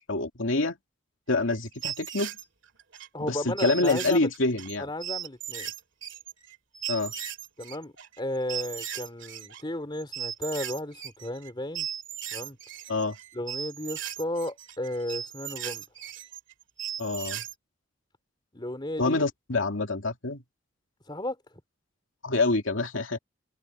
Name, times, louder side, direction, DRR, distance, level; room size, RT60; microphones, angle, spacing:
voice 1, 0.1-0.7 1.3-2.3 3.2-4.9 6.9-7.1 12.9-13.2 17.0-17.4 19.0-20.4 22.2-23.2, left 3 dB, 80° left, 2.6 m, -26 dB
sound 1, 1.3-3.1 3.6-9.6 10.0-11.5 11.7-17.5, right 10 dB, 65° right, 2.4 m, -37 dB
voice 2, 3.1-4.3 4.8-5.7 7.6-11.9 12.3-12.6 13.3-15.8 18.5-19.3 21.1-21.4, left 1 dB, 25° left, 3.2 m, -34 dB
head